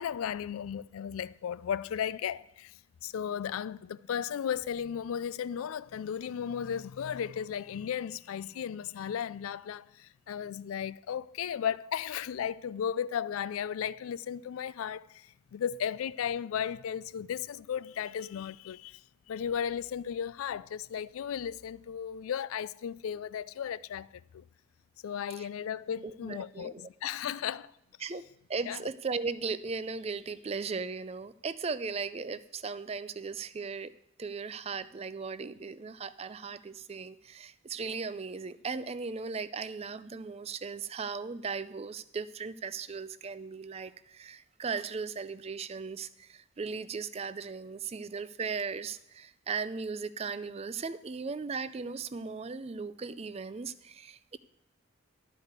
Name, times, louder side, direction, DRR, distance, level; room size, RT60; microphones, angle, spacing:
voice 1, 0.0-2.7 3.0-19.0 19.3-24.4 25.0-27.7 28.7-28.8, left 8 dB, 80° left, 0.3 m, -35 dB
voice 2, 26.0-26.9 28.0-33.9 34.2-54.4, right 5 dB, 30° right, 0.4 m, -37 dB
12.5 x 5.0 x 8.0 m
head